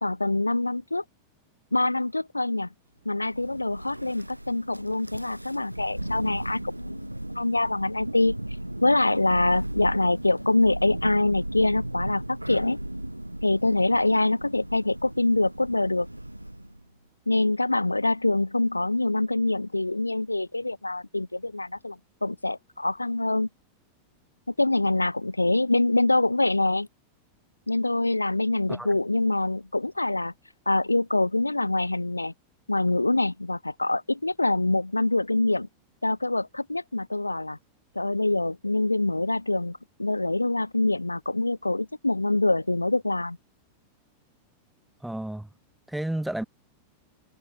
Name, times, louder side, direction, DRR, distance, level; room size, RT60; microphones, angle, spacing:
voice 1, 0.0-1.0 1.7-2.7 3.0-8.3 8.8-12.8 13.4-16.1 17.3-23.5 24.6-26.9 27.7-30.3 30.7-32.3 32.7-35.7 36.0-37.6 37.9-43.4, left 2 dB, 85° left, 1.0 m, -25 dB
Thunder, 3.2-16.8, right 1 dB, 85° right, 1.0 m, -36 dB
voice 2, 45.0-45.5 45.9-46.4, right 1 dB, 5° right, 0.8 m, -31 dB
figure-of-eight pair, 90°, 0 cm